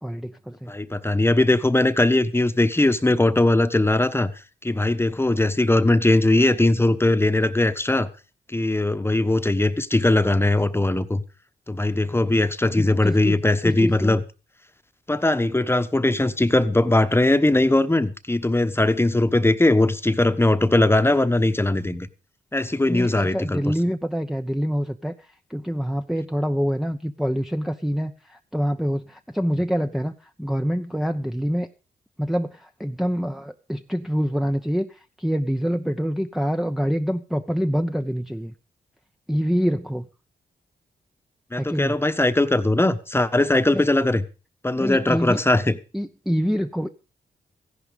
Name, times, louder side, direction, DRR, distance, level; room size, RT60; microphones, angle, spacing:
voice 1, 0.0-0.7 12.8-13.4 13.6-14.2 22.9-25.1 25.5-31.7 32.2-38.5 39.3-40.1 41.5-42.0 43.7-43.8 44.8-45.4 45.9-46.9, equal, ahead, 0.9 m, -26 dB
voice 2, 0.7-4.3 4.6-8.1 8.5-11.2 11.7-14.2 15.1-22.1 22.5-23.7 41.5-44.2 44.6-45.8, left 2 dB, 15° left, 1.3 m, -20 dB
15.0 x 11.0 x 5.3 m
cardioid pair, 70°, 17 cm